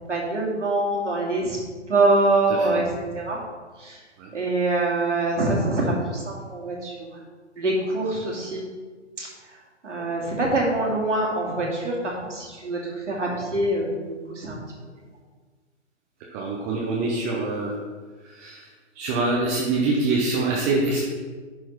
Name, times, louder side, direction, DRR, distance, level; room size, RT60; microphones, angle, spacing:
voice 1, 0.1-1.6 1.9-3.4 3.8-4.0 4.3-6.9 7.6-8.6 9.2-9.3 9.8-14.6, right 2 dB, 75° right, -3 dB, 2.7 m, -24 dB
voice 2, 16.3-17.7 18.4-18.6 19.0-21.0, right 3 dB, 15° right, -3 dB, 0.5 m, -24 dB
10.5 x 4.6 x 4.4 m, 1.5 s
figure-of-eight pair, 130°, 36 cm